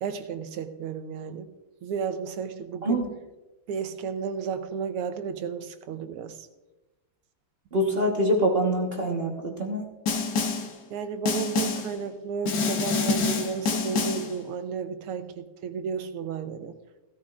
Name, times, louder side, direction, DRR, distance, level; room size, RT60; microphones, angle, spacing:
voice 1, 0.0-1.5 1.8-3.0 3.7-6.5 10.9-16.7, right 6 dB, 85° right, 9 dB, 1.7 m, -33 dB
voice 2, 7.7-9.8, equal, 35° right, -1 dB, 1.1 m, -25 dB
Snare drum, 10.1-10.7 11.3-11.9 12.5-14.3, left 4 dB, 60° left, 1.4 m, -27 dB
16.0 x 13.0 x 2.4 m, 1.1 s
omnidirectional pair, 2.4 m